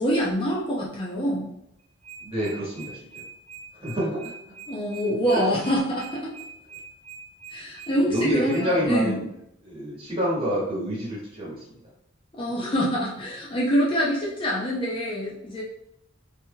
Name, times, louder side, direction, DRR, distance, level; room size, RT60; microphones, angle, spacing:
voice 1, 0.0-1.4 4.7-6.3 7.5-9.1 12.4-15.6, equal, 25° left, -5 dB, 0.5 m, -25 dB
sound 1, 1.8-8.6, right 6 dB, 80° right, 0.6 m, -43 dB
voice 2, 2.2-3.2 3.7-4.3 5.3-5.4 7.9-9.3 9.6-11.8, equal, 30° right, -6 dB, 1.2 m, -28 dB
3.3 x 2.8 x 2.2 m, 0.80 s
head